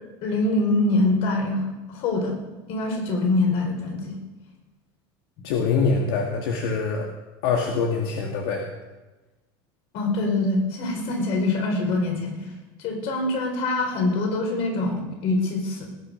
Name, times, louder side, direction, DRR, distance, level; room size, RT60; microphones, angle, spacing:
voice 1, 0.2-2.4 2.7-4.1 9.9-12.5 12.8-15.9, left 2 dB, 50° left, 2 dB, 4.7 m, -24 dB
voice 2, 5.4-7.1 7.4-8.6, left 5 dB, 80° left, 0 dB, 2.0 m, -24 dB
19.5 x 9.2 x 5.3 m, 1.1 s
supercardioid pair, 140°, 13 cm